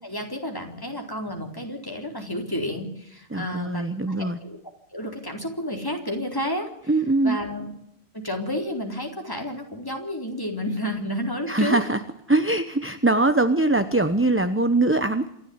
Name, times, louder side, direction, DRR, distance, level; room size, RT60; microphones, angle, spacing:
voice 1, 0.0-3.8 4.1-4.6 4.9-6.7 7.2-7.7 8.1-11.8, equal, 20° left, 2 dB, 4.3 m, -31 dB
voice 2, 3.3-4.4 6.9-7.4 11.5-12.0 12.3-15.3, right 2 dB, 10° right, 10 dB, 1.0 m, -22 dB
27.5 x 12.5 x 9.7 m, 0.77 s
omnidirectional pair, 1.1 m